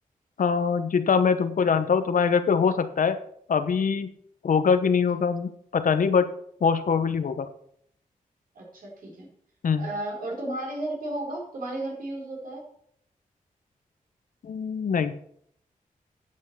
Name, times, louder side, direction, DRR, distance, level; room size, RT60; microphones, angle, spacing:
voice 1, 0.4-3.2 3.5-4.1 4.4-6.3 6.6-7.5 9.6-9.9 14.4-15.1, left 6 dB, 70° left, 10 dB, 1.0 m, -23 dB
voice 2, 8.5-9.3 9.8-12.6, right 1 dB, 80° right, -1 dB, 4.3 m, -33 dB
9.8 x 6.4 x 6.7 m, 0.66 s
wide cardioid pair, 90°, 14 cm